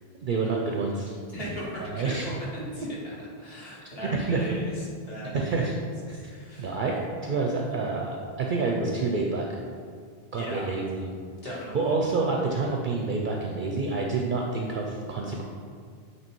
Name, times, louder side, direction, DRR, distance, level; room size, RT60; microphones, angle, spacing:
voice 1, 0.2-1.2 1.8-2.3 4.0-4.5 5.3-5.8 6.1-9.5 10.3-11.1 11.4-15.4, right 3 dB, 55° right, 0 dB, 0.7 m, -28 dB
voice 2, 1.3-5.7 6.1-6.8 10.3-10.7 11.4-11.9, equal, 70° left, -5 dB, 1.8 m, -38 dB
8.9 x 3.2 x 4.5 m, 2.1 s
omnidirectional pair, 1.0 m